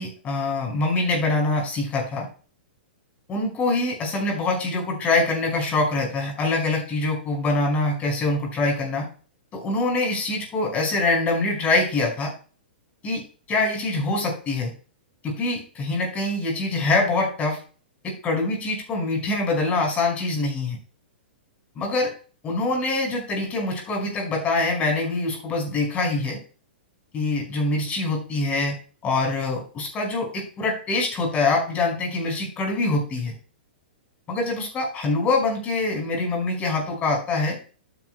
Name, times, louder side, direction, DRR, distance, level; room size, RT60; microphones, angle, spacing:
voice 1, 0.0-2.3 3.3-9.1 9.5-12.3 13.0-13.2 13.5-14.7 15.2-17.6 18.0-20.8 21.8-22.1 22.4-26.4 27.1-28.7 29.0-33.3 34.3-37.6, left 2 dB, 25° left, 1 dB, 5.6 m, -24 dB
12.0 x 9.7 x 2.3 m, 0.37 s
figure-of-eight pair, 110°, 6 cm